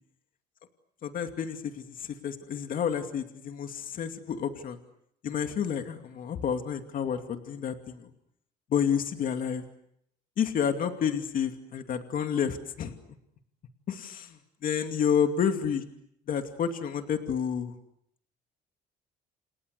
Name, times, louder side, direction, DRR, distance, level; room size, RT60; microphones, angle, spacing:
voice 1, 1.0-1.7 2.0-4.8 5.2-8.1 8.7-9.7 10.4-12.9 13.9-14.4 14.6-15.8 16.3-17.8, left 7 dB, 55° left, 6 dB, 2.6 m, -29 dB
29.5 x 29.0 x 6.7 m, 0.73 s
cardioid pair, 110°, 17 cm